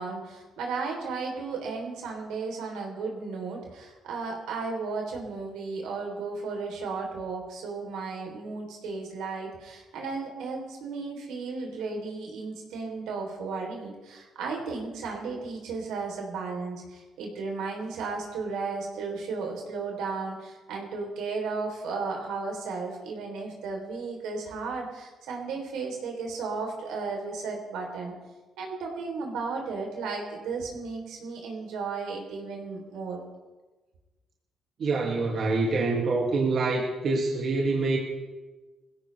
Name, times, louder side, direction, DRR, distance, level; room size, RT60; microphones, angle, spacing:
voice 1, 0.0-28.1 28.6-33.3, right 4 dB, 90° right, 1 dB, 3.6 m, -34 dB
voice 2, 34.8-38.0, right 3 dB, 60° right, -1 dB, 2.3 m, -26 dB
20.5 x 16.0 x 3.4 m, 1.2 s
cardioid pair, 90°, 0 cm